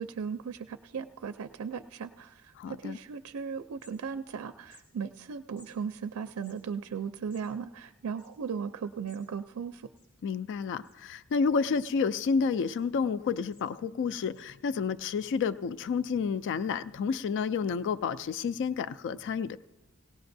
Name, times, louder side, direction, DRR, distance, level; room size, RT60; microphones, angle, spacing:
voice 1, 0.0-9.9, right 6 dB, 75° right, 9 dB, 0.4 m, -37 dB
voice 2, 2.6-3.0 10.2-19.6, left 5 dB, 55° left, 15 dB, 0.3 m, -30 dB
sound 1, 3.8-4.4 4.6-4.9 5.6-5.7 6.3-9.3 9.6-9.7 9.9-10.5 10.8-11.3 11.7-12.2 12.7-12.8 13.2-14.0 14.3-14.5 15.2-15.4, left 2 dB, 90° left, 6.1 m, -62 dB
18.0 x 18.0 x 2.6 m, 1.1 s
head